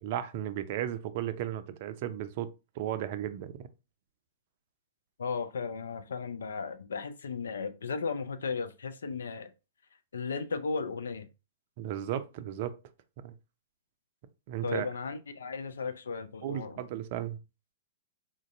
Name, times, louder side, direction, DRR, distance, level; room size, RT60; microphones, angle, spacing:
voice 1, 0.0-2.5 2.8-3.5 11.8-12.8 13.2-13.3 14.5-14.9 16.4-17.4, right 11 dB, 50° right, 0.4 m, -34 dB
voice 2, 5.2-9.5 10.1-11.3 14.6-16.8, left 5 dB, 75° left, 0.4 m, -35 dB
3.7 x 2.6 x 2.4 m
figure-of-eight pair, 110°, 0 cm